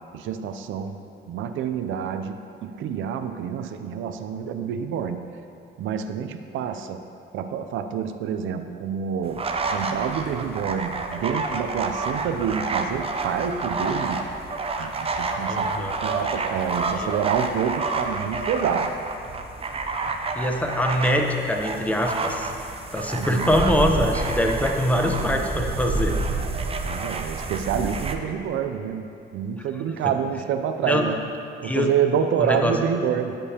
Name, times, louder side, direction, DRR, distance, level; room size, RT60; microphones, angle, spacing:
voice 1, 0.1-1.0 1.3-5.3 5.8-7.0 7.3-9.4 9.7-14.3 14.8-18.9 23.2-23.5 26.9-29.1 29.3-31.2 31.6-33.4, right 8 dB, 80° right, 8 dB, 0.5 m, -27 dB
sound 1, 9.2-28.2, right 3 dB, 30° right, 0.6 m, -29 dB
voice 2, 15.5-16.0 16.9-17.1 20.3-22.5 22.9-26.2 30.0-30.1 30.8-31.0 31.6-31.9 32.4-32.8, left 1 dB, 5° left, 2 dB, 0.8 m, -23 dB
13.0 x 5.2 x 2.9 m, 2.7 s
cardioid pair, 90°, 20 cm